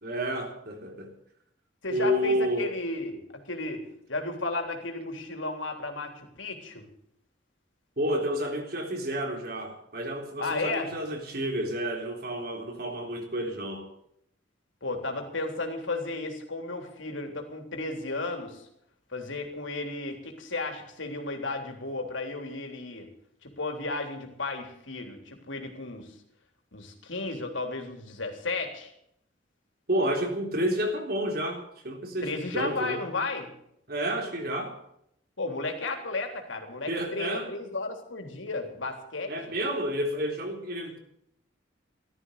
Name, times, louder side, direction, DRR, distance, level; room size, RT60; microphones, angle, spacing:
voice 1, 0.0-1.1 1.9-2.7 8.0-13.9 29.9-33.0 33.9-34.8 36.9-37.5 39.3-41.0, equal, 50° right, 3 dB, 3.7 m, -30 dB
voice 2, 1.8-3.8 4.1-6.9 10.4-10.9 14.8-18.7 19.1-23.1 23.4-26.1 26.7-28.9 32.2-33.5 35.4-39.3, left 3 dB, 90° left, 4 dB, 3.5 m, -34 dB
15.5 x 13.0 x 6.7 m, 0.73 s
head